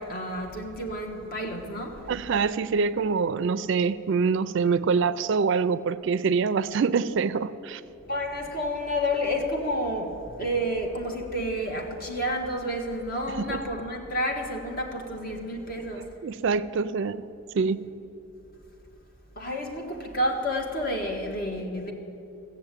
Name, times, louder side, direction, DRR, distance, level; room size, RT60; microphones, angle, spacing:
voice 1, 0.0-2.1 8.1-16.2 19.3-21.9, equal, 45° left, 1 dB, 1.6 m, -30 dB
voice 2, 2.1-7.8 13.5-13.6 16.2-17.3 17.5-17.8, right 5 dB, 55° right, 15 dB, 0.4 m, -25 dB
14.5 x 7.3 x 8.9 m, 2.9 s
head